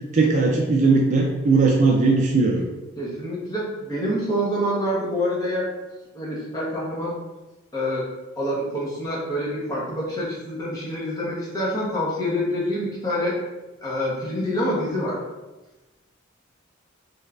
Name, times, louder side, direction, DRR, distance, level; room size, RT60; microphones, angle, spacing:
voice 1, 0.1-2.6, right 3 dB, 35° right, 0 dB, 0.3 m, -18 dB
voice 2, 3.0-5.7 6.1-7.1 7.7-8.1 8.4-13.4 13.8-15.2, equal, 15° left, -6 dB, 0.9 m, -26 dB
3.3 x 3.1 x 2.4 m, 1.1 s
head